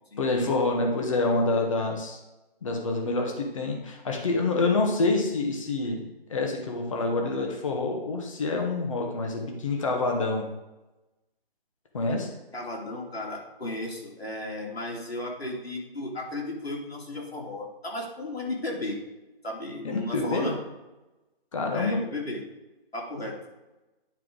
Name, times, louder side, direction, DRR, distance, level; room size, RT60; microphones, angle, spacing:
voice 1, 0.2-2.2 2.6-6.0 6.3-10.5 11.9-12.3 19.8-20.6 21.5-22.0, left 3 dB, 30° left, 1 dB, 1.3 m, -27 dB
voice 2, 12.5-19.0 19.4-20.6 21.7-22.4 22.9-23.4, left 2 dB, 90° left, -2 dB, 2.8 m, -34 dB
10.0 x 4.5 x 3.8 m, 1.0 s
figure-of-eight pair, 160°, 30 cm